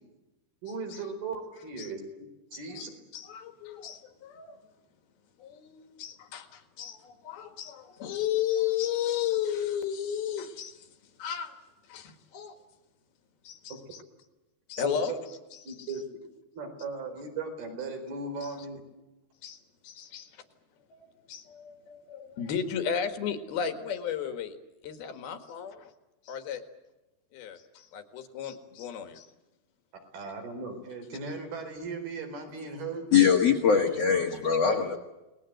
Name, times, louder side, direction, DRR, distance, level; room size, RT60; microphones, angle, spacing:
voice 1, 0.6-2.0 2.5-2.9 14.8-15.2 15.6-16.0 16.5-18.8 30.1-33.0, right 4 dB, 65° right, 5 dB, 6.2 m, -37 dB
voice 2, 2.5-2.9 3.1-4.6 5.4-10.9 11.2-11.6 11.9-12.6 13.4-14.0 14.7-15.2 15.6-15.9 18.4-18.6 19.4-20.4 20.9-24.6 24.8-25.9 26.2-26.6 27.3-29.3, left 9 dB, 70° left, 8 dB, 3.6 m, -34 dB
voice 3, 33.1-35.0, left 7 dB, 50° left, 1 dB, 2.2 m, -22 dB
29.5 x 20.5 x 7.9 m, 1.0 s
omnidirectional pair, 4.7 m